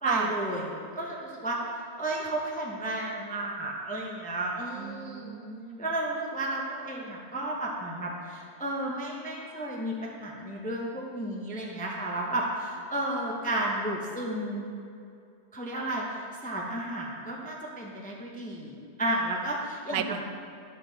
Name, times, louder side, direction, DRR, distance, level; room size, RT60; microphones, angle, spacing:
voice 1, 0.0-5.4 5.8-14.7 15.5-20.2, right 1 dB, 10° left, -2 dB, 0.6 m, -32 dB
voice 2, 4.8-5.9 19.9-20.2, right 9 dB, 90° right, 9 dB, 1.1 m, -34 dB
11.0 x 6.0 x 4.0 m, 2.5 s
omnidirectional pair, 1.6 m